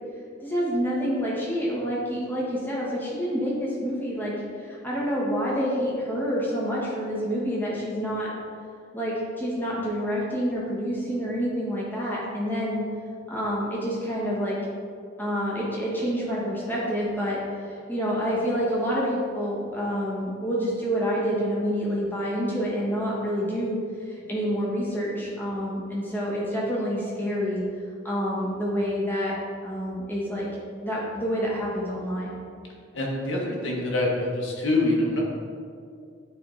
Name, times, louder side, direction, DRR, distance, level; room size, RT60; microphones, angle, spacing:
voice 1, 0.4-4.3 4.6-8.3 8.9-12.8 13.3-14.6 15.2-17.4 17.7-23.8 24.1-27.6 28.0-29.3 29.6-30.5 30.8-32.3, equal, 10° left, -6 dB, 1.4 m, -28 dB
voice 2, 32.9-35.2, left 2 dB, 80° left, -3 dB, 1.5 m, -25 dB
9.4 x 3.5 x 4.0 m, 2.3 s
head